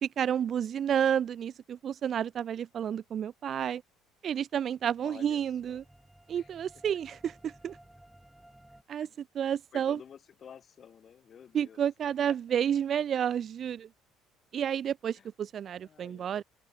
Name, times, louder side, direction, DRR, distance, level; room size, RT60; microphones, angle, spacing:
voice 1, 0.0-3.8 4.2-5.8 6.3-7.8 8.9-9.1 9.3-10.0 11.5-13.9 14.5-16.4, right 9 dB, 40° right, 0.3 m, -30 dB
sound 1, 4.5-8.8, right 1 dB, 5° right, 7.3 m, -57 dB
voice 2, 5.0-5.8 6.3-6.5 9.0-9.1 9.7-11.8 12.3-12.4 15.2-15.3 15.8-16.4, left 8 dB, 40° left, 1.1 m, -51 dB
open air
cardioid pair, 130°, 0 cm